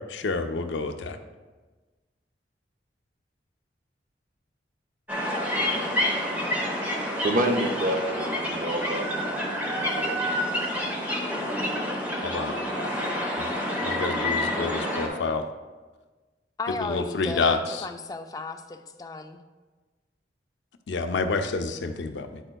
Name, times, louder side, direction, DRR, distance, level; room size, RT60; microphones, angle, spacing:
voice 1, 0.1-1.2 12.2-12.6 13.4-13.5 13.8-15.4 16.8-17.9 20.9-22.4, left 4 dB, 85° left, 7 dB, 0.5 m, -28 dB
sound 1, 5.1-15.1, left 1 dB, 10° right, 1.0 m, -28 dB
voice 2, 7.2-10.4, right 1 dB, 50° right, 3 dB, 0.6 m, -29 dB
voice 3, 16.6-19.4, left 3 dB, 20° left, 7 dB, 0.3 m, -35 dB
9.9 x 4.3 x 2.2 m, 1.3 s
head